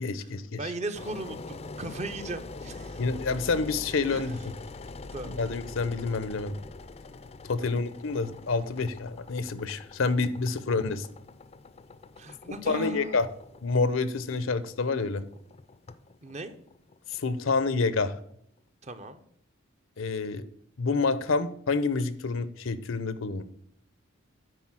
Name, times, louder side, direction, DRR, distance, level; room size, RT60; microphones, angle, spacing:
voice 1, 0.0-0.6 3.0-4.4 5.2-6.6 7.5-11.1 12.7-13.3 13.6-15.2 17.1-18.2 20.0-20.4 20.8-23.4, left 4 dB, 80° left, 14 dB, 0.7 m, -28 dB
voice 2, 0.6-3.0 4.1-4.3 5.1-5.3 7.6-7.7 12.2-13.2 16.2-16.5 18.8-19.2, right 2 dB, 35° right, 9 dB, 0.7 m, -37 dB
Engine, 0.9-17.8, left 3 dB, 30° left, 0.4 m, -44 dB
10.0 x 4.0 x 6.0 m, 0.69 s
head